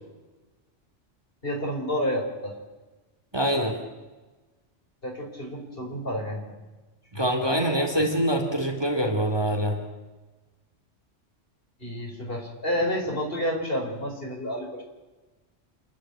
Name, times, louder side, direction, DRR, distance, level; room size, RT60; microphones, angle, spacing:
voice 1, 1.4-2.5 5.0-6.6 7.1-7.2 8.0-8.1 11.8-14.8, equal, 50° left, 0 dB, 4.6 m, -30 dB
voice 2, 3.3-3.8 7.1-9.8, equal, 20° right, 2 dB, 2.6 m, -24 dB
28.5 x 10.5 x 8.9 m, 1.2 s
omnidirectional pair, 1.2 m